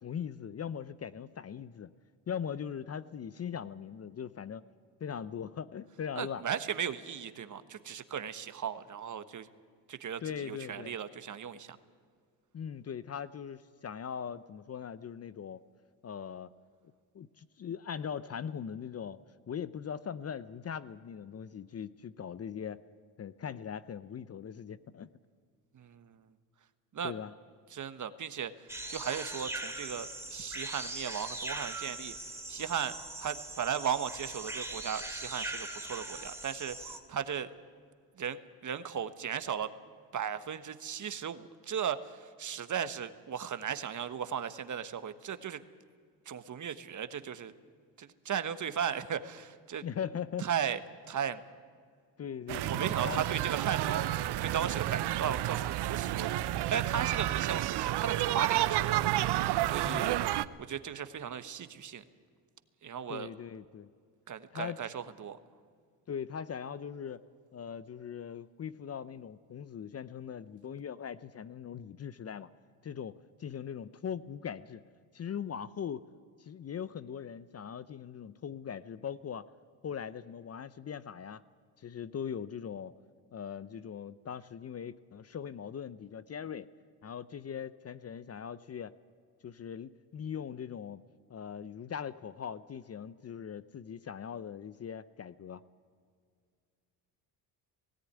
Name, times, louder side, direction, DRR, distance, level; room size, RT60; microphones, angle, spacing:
voice 1, 0.0-1.9 2.3-4.6 5.0-6.4 10.2-11.0 12.5-15.6 16.0-16.5 17.1-19.2 19.5-22.8 23.2-25.1 27.0-27.3 49.8-50.5 52.2-53.2 59.8-60.2 63.1-63.9 64.5-64.8 66.1-67.2 67.5-72.5 72.8-74.8 75.1-76.1 76.4-79.5 79.8-81.4 81.8-82.9 83.3-86.7 87.0-88.9 89.4-91.0 91.3-95.6, left 8 dB, 35° left, 15 dB, 0.7 m, -40 dB
voice 2, 6.2-9.5 9.9-11.8 25.7-26.2 26.9-27.1 27.7-28.5 28.9-32.1 32.5-37.5 38.2-39.7 40.1-45.6 46.3-47.5 48.0-49.8 50.4-50.8 51.1-51.4 52.6-56.3 56.7-59.0 59.4-62.0 62.8-63.3 64.3-65.4, right 8 dB, 40° right, 11 dB, 1.3 m, -36 dB
sound 1, 28.7-37.0, right 2 dB, 5° right, 2.6 m, -40 dB
sound 2, 52.5-60.5, right 14 dB, 60° right, 0.8 m, -30 dB
18.0 x 17.0 x 9.6 m, 2.1 s
supercardioid pair, 75°, 46 cm